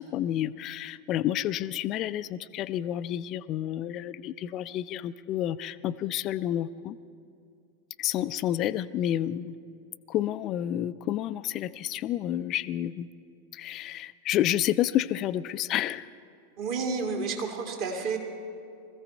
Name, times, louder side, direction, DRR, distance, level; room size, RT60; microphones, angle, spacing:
voice 1, 0.0-7.0 8.0-9.5 10.1-13.1 13.5-16.1, left 12 dB, 35° left, 16 dB, 0.4 m, -30 dB
voice 2, 16.6-18.2, right 4 dB, 45° right, 2 dB, 2.3 m, -30 dB
21.0 x 15.0 x 4.4 m, 2.5 s
figure-of-eight pair, 90°, 0 cm